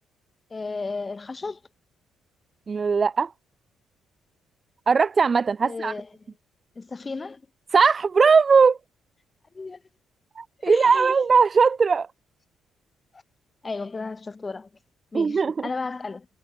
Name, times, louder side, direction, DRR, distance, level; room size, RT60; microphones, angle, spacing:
voice 1, 0.5-1.6 5.6-6.1 6.8-7.4 9.5-9.8 10.6-11.1 13.1-13.2 13.6-14.7 15.1-16.3, left 3 dB, 15° left, 2.0 m, -33 dB
voice 2, 2.7-3.3 4.9-5.9 7.7-8.8 10.4-12.1 15.1-15.7, right 5 dB, 25° right, 0.5 m, -19 dB
cardioid pair, 175°, 0 cm